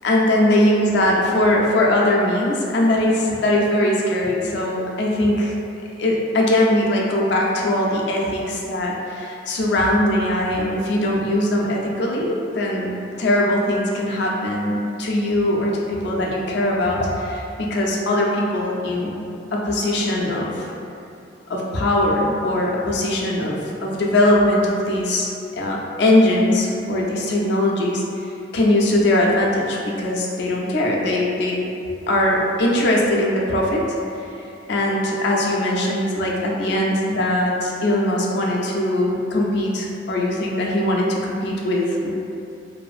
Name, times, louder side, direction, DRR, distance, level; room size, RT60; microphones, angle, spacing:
voice 1, 0.0-5.5 6.0-19.2 19.5-20.7 21.5-31.6 32.1-34.2 34.7-42.1, left 1 dB, 60° left, -2 dB, 0.4 m, -21 dB
2.6 x 2.4 x 2.4 m, 2.6 s
head